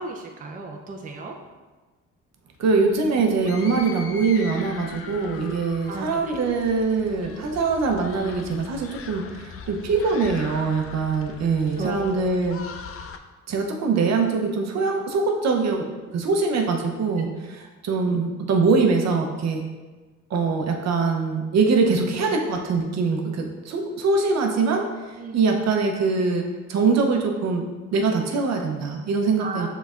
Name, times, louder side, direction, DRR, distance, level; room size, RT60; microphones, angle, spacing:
voice 1, 0.0-1.4 5.9-6.5 11.8-12.3 25.1-25.8 29.4-29.7, right 3 dB, 25° right, 1 dB, 0.5 m, -34 dB
sound 1, 2.6-13.2, left 6 dB, 50° left, 0.4 m, -41 dB
voice 2, 2.6-12.6 13.5-15.8 16.1-17.3 17.8-19.6 20.3-24.9 25.3-29.7, right 4 dB, 60° right, 2 dB, 0.7 m, -23 dB
5.2 x 4.1 x 2.4 m, 1.3 s
cardioid pair, 90°, 30 cm